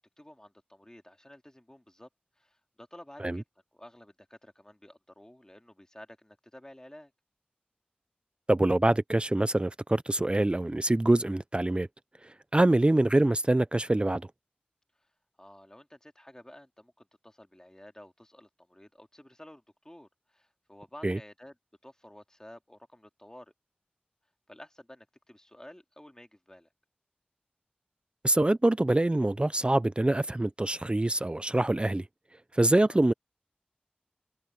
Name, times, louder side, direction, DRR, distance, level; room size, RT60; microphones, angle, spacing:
voice 1, 0.0-2.1 2.4-3.4 3.7-7.1 12.8-12.9 15.0-15.1 15.4-21.5 21.8-23.5 24.5-26.7 32.9-33.0, left 1 dB, 20° left, 2.6 m, -52 dB
voice 2, 8.5-11.9 12.2-14.2 21.0-21.2 28.2-32.1 32.5-33.1, right 1 dB, 35° right, 0.4 m, -25 dB
wide cardioid pair, 40°, 3 cm